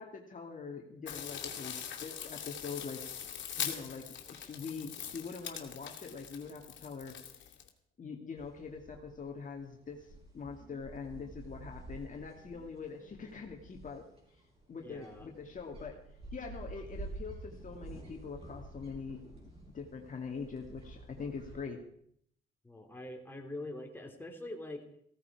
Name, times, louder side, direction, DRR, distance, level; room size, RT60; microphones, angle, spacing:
voice 1, 0.0-3.1 3.6-4.1 4.3-7.5 8.0-14.1 14.7-16.0 16.3-19.4 19.7-21.8, left 5 dB, 40° left, 1 dB, 2.3 m, -43 dB
sound 1, 1.1-7.7, left 8 dB, 70° left, 2.6 m, -42 dB
sound 2, 8.4-21.6, right 2 dB, 30° right, 7.2 m, -50 dB
voice 2, 14.8-15.3 22.6-24.8, left 1 dB, 10° left, 2 dB, 3.1 m, -44 dB
16.5 x 14.0 x 4.8 m, 0.67 s
cardioid pair, 90°, 20 cm